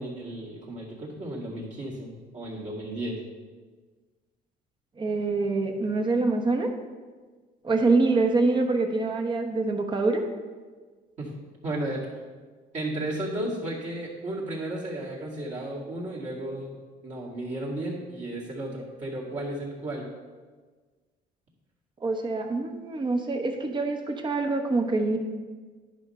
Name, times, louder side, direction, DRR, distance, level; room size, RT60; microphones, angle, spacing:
voice 1, 0.0-3.2 11.2-11.3 11.6-12.0 12.7-16.8 17.0-20.1, right 1 dB, 45° right, -6 dB, 2.1 m, -34 dB
voice 2, 5.0-6.7 7.6-10.2 22.0-25.2, right 3 dB, 30° right, 4 dB, 1.0 m, -25 dB
10.5 x 5.3 x 4.3 m, 1.4 s
cardioid pair, 110°, 17 cm